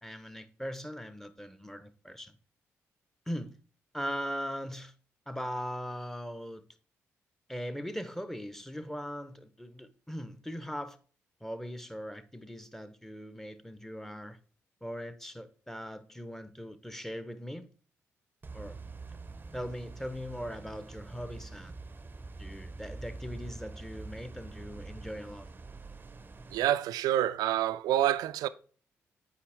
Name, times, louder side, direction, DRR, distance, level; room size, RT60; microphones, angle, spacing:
voice 1, 0.0-2.3 3.3-3.6 3.9-4.9 5.3-6.6 7.5-11.0 11.4-14.4 14.8-17.7 18.5-18.8 19.5-21.8 22.4-25.5, equal, 5° left, 0.9 m, -40 dB
sound 1, 18.4-26.6, right 3 dB, 30° right, 0.7 m, -45 dB
voice 2, 26.5-28.5, right 12 dB, 75° right, 0.4 m, -27 dB
8.3 x 4.9 x 3.4 m
hypercardioid pair, 45°, 7 cm